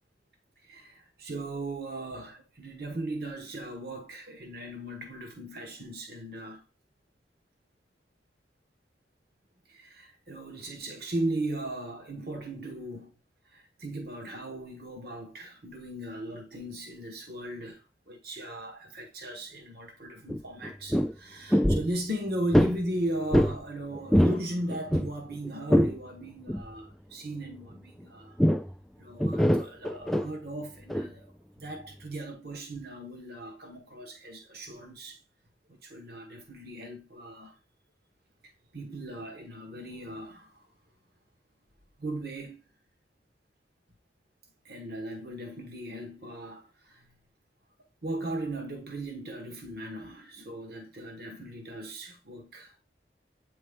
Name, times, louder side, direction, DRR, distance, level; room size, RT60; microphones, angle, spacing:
voice 1, 0.6-6.6 9.7-13.1 13.4-28.4 29.0-31.3 31.6-35.2 35.8-37.6 38.4-40.6 42.0-42.6 44.6-47.2 48.0-52.7, right 1 dB, 60° right, 1.3 m, -37 dB
sound 1, 20.3-20.4 20.6-21.1 21.5-21.9 22.5-22.8 23.3-23.6 23.9-24.4 24.7-25.9 26.5-26.7 28.4-28.7 29.2-30.3 30.9-31.1, equal, ahead, 0.3 m, -23 dB
8.5 x 3.1 x 3.6 m
head